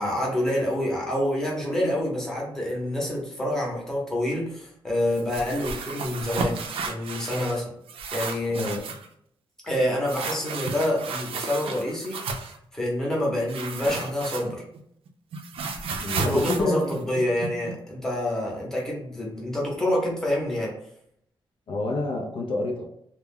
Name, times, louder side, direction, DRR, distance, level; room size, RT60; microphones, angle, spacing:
voice 1, 0.0-6.6 6.9-7.6 8.1-8.6 9.6-12.2 12.7-14.6 16.1-20.7, left 1 dB, 5° left, -4 dB, 0.8 m, -27 dB
sound 1, 5.1-7.6 7.9-9.1 10.1-12.6 13.5-14.8 15.1-17.7, right 4 dB, 85° right, 0.4 m, -33 dB
voice 2, 8.5-8.8 16.0-16.9 21.7-22.8, left 2 dB, 70° left, 1 dB, 0.4 m, -27 dB
2.2 x 2.1 x 3.4 m, 0.71 s
wide cardioid pair, 155°, 9 cm